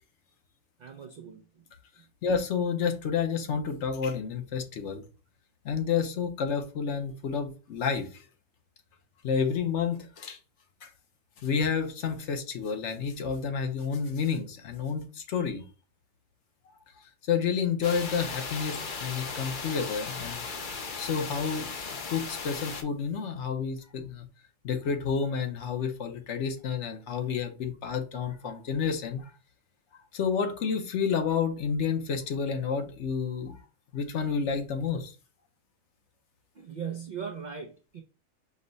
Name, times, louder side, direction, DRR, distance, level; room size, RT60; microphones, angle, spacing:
voice 1, 0.8-1.4 36.6-38.0, right 7 dB, 80° right, 0.4 m, -39 dB
voice 2, 2.2-5.0 5.6-8.1 9.2-10.4 10.8-10.9 11.4-15.6 17.3-20.4 21.0-21.7 22.1-24.3 24.6-29.2 30.1-33.6 33.9-35.1, left 6 dB, 65° left, 1.0 m, -30 dB
sound 1, 17.8-22.8, left 4 dB, 50° left, 0.7 m, -37 dB
5.3 x 2.1 x 3.9 m
omnidirectional pair, 1.4 m